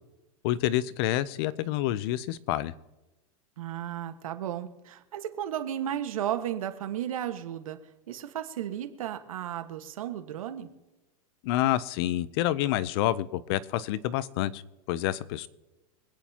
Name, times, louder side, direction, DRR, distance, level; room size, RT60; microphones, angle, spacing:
voice 1, 0.4-2.7 11.4-14.6 14.9-15.5, left 14 dB, 45° left, 17 dB, 0.6 m, -28 dB
voice 2, 3.6-7.8 8.1-10.7, right 11 dB, 90° right, 7 dB, 1.5 m, -34 dB
26.0 x 9.3 x 2.9 m, 1.0 s
supercardioid pair, 155°, 17 cm